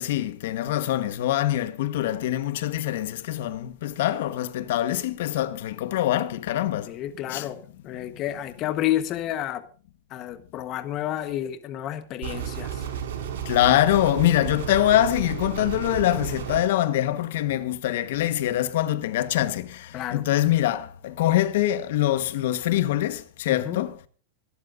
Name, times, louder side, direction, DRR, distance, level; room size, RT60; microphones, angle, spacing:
voice 1, 0.0-6.9 7.3-7.5 13.4-24.0, left 13 dB, 65° left, 1.3 m, -24 dB
voice 2, 6.9-7.6 7.8-9.6 10.1-12.9 19.9-20.2 23.5-23.8, left 12 dB, 30° left, 1.2 m, -30 dB
sound 1, 12.2-16.6, right 8 dB, 90° right, 5.2 m, -32 dB
25.5 x 13.0 x 2.6 m
supercardioid pair, 175°, 0 cm